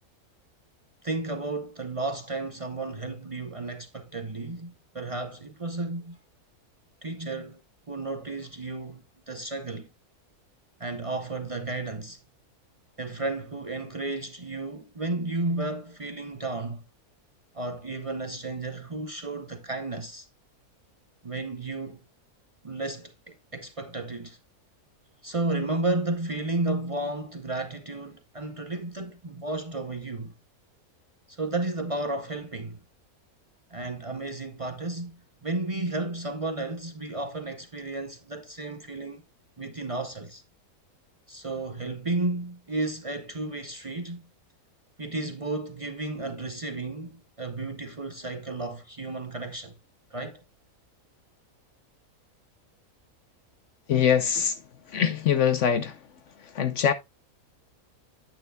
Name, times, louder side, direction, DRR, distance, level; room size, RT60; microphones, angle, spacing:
voice 1, 1.0-6.2 7.0-7.6 7.9-9.9 10.8-12.2 13.0-16.8 17.5-20.3 21.2-22.0 22.6-24.4 25.2-30.3 31.3-32.8 33.7-39.2 39.6-40.4 41.3-44.3 45.0-49.7 50.1-50.4, right 2 dB, 40° right, 0.5 m, -33 dB
voice 2, 53.9-54.6 54.9-56.0 56.4-56.9, left 8 dB, 60° left, 0.9 m, -23 dB
9.0 x 8.8 x 2.2 m
omnidirectional pair, 1.5 m